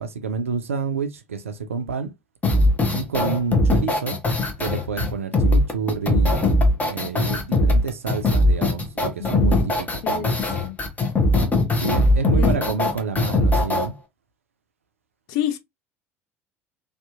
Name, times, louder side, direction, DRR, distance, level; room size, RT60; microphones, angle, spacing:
voice 1, 0.0-2.1 2.9-4.2 4.6-6.3 6.8-10.4 11.7-13.9, right 5 dB, 80° right, 0.4 m, -28 dB
sound 1, 2.4-13.9, left 1 dB, 20° left, 0.7 m, -20 dB
voice 2, 9.2-9.5 10.0-10.8 12.4-12.6 12.9-13.0 15.3-15.6, left 11 dB, 55° left, 0.4 m, -29 dB
2.6 x 2.3 x 2.3 m
figure-of-eight pair, 65°, 7 cm